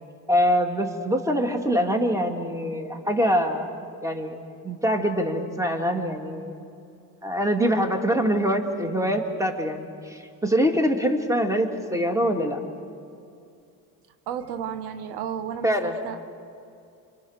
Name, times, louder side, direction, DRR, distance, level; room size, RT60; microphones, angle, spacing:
voice 1, 0.3-3.7 4.0-6.5 7.2-12.6 15.6-16.0, equal, 10° right, 5 dB, 2.7 m, -24 dB
voice 2, 14.3-15.7 16.0-16.3, right 8 dB, 90° right, 10 dB, 1.4 m, -32 dB
27.5 x 25.0 x 6.7 m, 2.5 s
cardioid pair, 100°, 38 cm